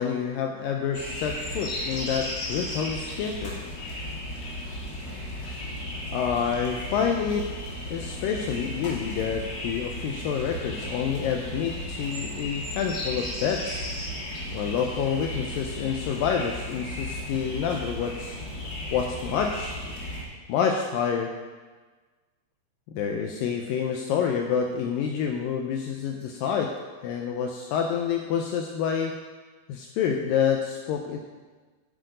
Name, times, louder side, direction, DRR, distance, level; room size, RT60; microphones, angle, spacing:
voice 1, 0.0-3.6 6.1-7.5 7.9-13.8 14.5-18.4 18.9-19.8 20.5-21.4 22.9-26.8 27.0-29.2 29.7-31.2, left 7 dB, 85° left, 3 dB, 2.0 m, -28 dB
sound 1, 0.9-20.2, left 1 dB, 55° left, 1.0 m, -35 dB
9.1 x 7.7 x 5.0 m, 1.4 s
omnidirectional pair, 4.6 m